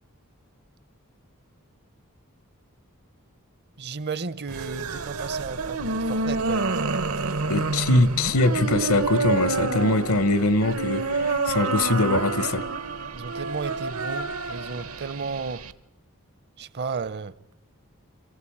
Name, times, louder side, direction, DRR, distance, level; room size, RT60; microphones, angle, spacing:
voice 1, 3.8-6.7 13.1-15.7 16.6-17.3, right 5 dB, 50° right, 0.7 m, -33 dB
sound 1, 4.5-15.7, right 3 dB, 75° right, 1.0 m, -28 dB
voice 2, 7.5-12.6, left 2 dB, 70° left, 1.0 m, -22 dB
27.0 x 15.0 x 8.7 m
head